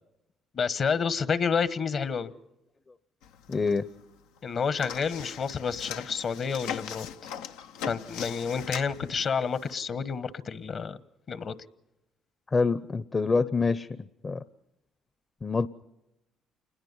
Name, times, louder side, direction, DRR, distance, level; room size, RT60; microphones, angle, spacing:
voice 1, 0.5-2.3 4.4-7.1 7.8-11.0 11.3-11.5, left 6 dB, 55° left, 1.3 m, -29 dB
sound 1, 3.2-4.1 4.4-9.8, left 8 dB, 85° left, 0.8 m, -40 dB
voice 2, 3.5-3.9 12.5-13.9 14.2-14.4 15.4-15.7, left 4 dB, 35° left, 0.8 m, -26 dB
28.0 x 20.5 x 5.6 m
supercardioid pair, 60°, 0 cm